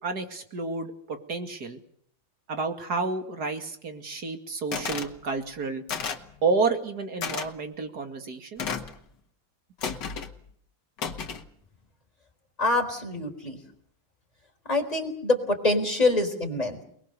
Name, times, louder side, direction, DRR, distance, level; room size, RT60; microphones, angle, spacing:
voice 1, 0.0-1.8 2.5-5.8 6.4-8.6, right 4 dB, 55° right, 6 dB, 2.7 m, -30 dB
sound 1, 4.7-5.1 5.9-6.3 7.2-7.5 8.6-9.0 9.8-10.3 11.0-11.5, left 6 dB, 65° left, 2.2 m, -32 dB
voice 2, 12.6-13.6 14.7-16.8, left 2 dB, 20° left, 2 dB, 4.3 m, -25 dB
29.0 x 20.5 x 6.8 m, 0.67 s
omnidirectional pair, 2.1 m